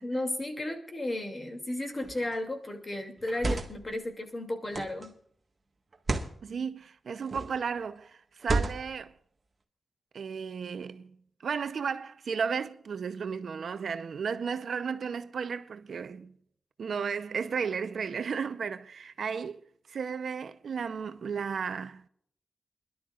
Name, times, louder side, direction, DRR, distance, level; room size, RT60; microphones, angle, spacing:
voice 1, 0.0-5.1, left 1 dB, 25° left, 2.6 m, -34 dB
sound 1, 2.0-2.4 3.2-3.9 4.7-5.1 5.9-6.4 7.2-7.6 8.4-9.0, right 3 dB, 35° right, 1.7 m, -32 dB
voice 2, 6.4-9.1 10.1-11.2 11.4-16.3 16.8-19.6 19.9-22.0, right 6 dB, 70° right, 0.7 m, -34 dB
26.0 x 12.0 x 2.5 m
wide cardioid pair, 125°, 0 cm